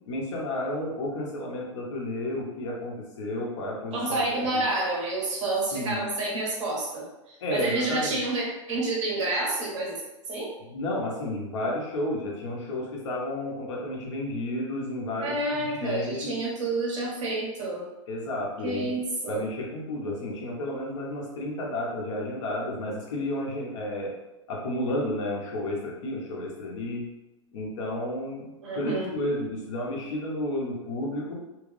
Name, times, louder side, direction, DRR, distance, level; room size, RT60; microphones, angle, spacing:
voice 1, 0.1-4.0 4.5-4.6 5.7-6.1 7.4-8.2 10.6-16.4 18.1-19.0 19.3-24.1 24.5-27.1 27.5-31.3, left 1 dB, 65° left, -2 dB, 1.1 m, -32 dB
voice 2, 3.9-10.0 10.3-10.5 15.2-17.8 18.6-19.4 28.6-29.0, right 2 dB, 70° right, -3 dB, 1.4 m, -29 dB
3.1 x 2.5 x 3.3 m, 1.0 s
hypercardioid pair, 110°, 16 cm